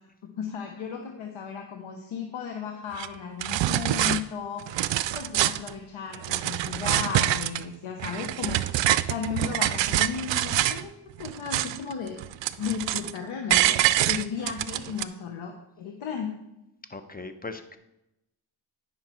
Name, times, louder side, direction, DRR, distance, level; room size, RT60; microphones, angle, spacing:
voice 1, 0.4-4.9 5.1-8.7 9.1-10.9 11.2-12.2 12.6-13.8 14.0-16.3, left 7 dB, 85° left, 3 dB, 1.0 m, -35 dB
sound 1, 2.9-3.1 3.4-4.2 4.6-5.7 6.1-7.6 8.0-10.8 11.2-11.9 12.2-13.2 13.5-15.0, right 13 dB, 65° right, 0.5 m, -25 dB
voice 2, 16.9-17.8, left 3 dB, 20° left, 9 dB, 1.0 m, -40 dB
9.9 x 5.7 x 4.4 m, 0.87 s
cardioid pair, 55°, 47 cm